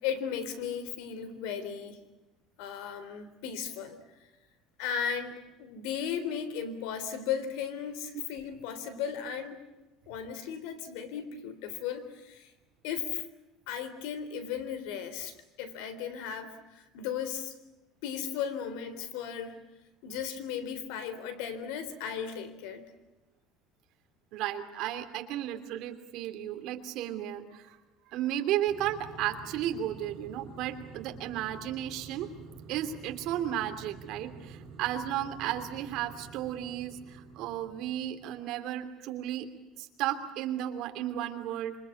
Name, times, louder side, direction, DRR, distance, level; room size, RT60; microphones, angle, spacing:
voice 1, 0.0-2.0 2.6-4.0 4.8-9.6 10.1-12.5 12.8-13.3 13.7-17.6 18.0-19.6 20.0-22.9, left 8 dB, 85° left, 12 dB, 3.7 m, -36 dB
voice 2, 24.3-27.8 28.1-32.3 32.7-39.5 39.8-41.8, right 12 dB, 55° right, 6 dB, 3.0 m, -34 dB
sound 1, 28.7-38.5, right 4 dB, 40° right, 6.2 m, -49 dB
27.0 x 25.0 x 8.6 m, 1.0 s
cardioid pair, 170°, 0 cm